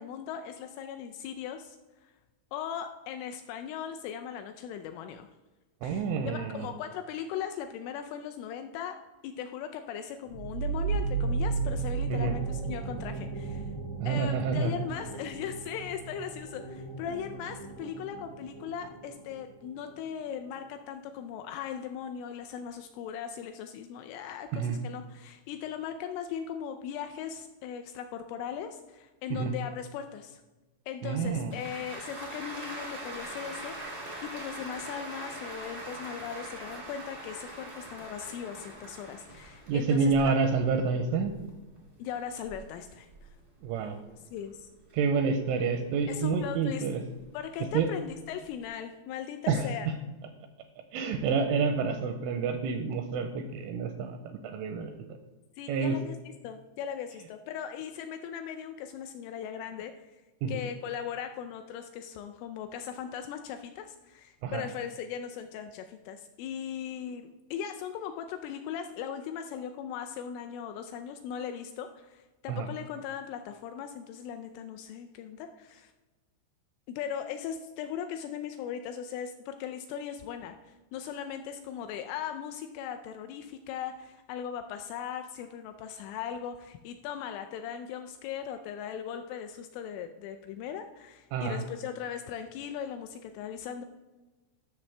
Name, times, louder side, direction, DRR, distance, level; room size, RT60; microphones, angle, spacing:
voice 1, 0.0-1.8 2.0-2.1 2.5-5.3 5.8-9.0 9.2-13.7 14.1-30.4 30.9-33.8 34.2-40.4 42.0-43.3 44.3-44.7 46.1-46.9 47.3-49.9 55.6-56.2 56.4-60.2 60.5-75.9 76.9-93.9, left 8 dB, 85° left, 7 dB, 2.8 m, -39 dB
voice 2, 5.8-6.7 12.1-12.4 14.0-14.7 24.5-24.8 29.3-29.5 31.0-31.5 39.7-41.3 43.6-44.0 44.9-47.0 47.7-47.9 49.5-49.7 50.9-55.2 55.7-56.0 60.4-60.6 64.4-64.7 72.5-72.7 91.3-91.6, right 5 dB, 85° right, 6 dB, 2.9 m, -28 dB
sound 1, 10.3-19.6, right 4 dB, 30° left, 0.5 m, -35 dB
sound 2, 31.5-44.0 44.4-46.5 47.0-48.6, right 1 dB, 60° right, 0.5 m, -43 dB
13.0 x 6.4 x 3.3 m, 1.2 s
omnidirectional pair, 6.0 m